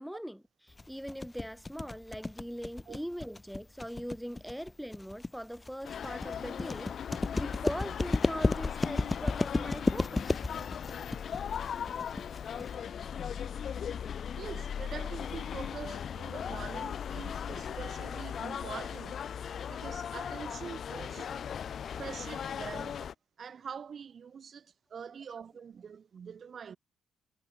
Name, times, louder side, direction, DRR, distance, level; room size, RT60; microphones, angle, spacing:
voice 1, 0.0-10.4 17.5-17.6 18.1-18.2 21.3-21.4, equal, ahead, 1.8 m, -41 dB
sound 1, 0.8-12.8, left 2 dB, 20° left, 0.8 m, -32 dB
sound 2, 5.8-23.1, left 8 dB, 55° left, 1.4 m, -38 dB
voice 2, 14.4-19.2 19.7-21.3 21.9-23.0 23.4-26.8, right 7 dB, 50° right, 0.7 m, -44 dB
cardioid pair, 90°, 0 cm